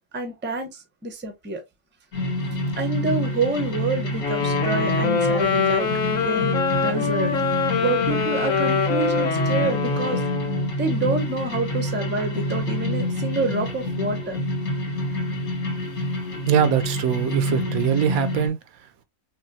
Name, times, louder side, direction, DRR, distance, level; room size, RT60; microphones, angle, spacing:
voice 1, 0.1-1.6 2.8-7.3 7.8-10.2 10.8-14.4, right 3 dB, 10° right, 0.6 m, -28 dB
sound 1, 2.1-18.5, left 1 dB, 85° left, 2.2 m, -27 dB
Wind instrument woodwind instrument, 4.2-10.7, left 6 dB, 65° left, 1.8 m, -24 dB
voice 2, 16.5-19.0, right 9 dB, 80° right, 1.1 m, -23 dB
5.4 x 2.3 x 2.7 m
omnidirectional pair, 1.5 m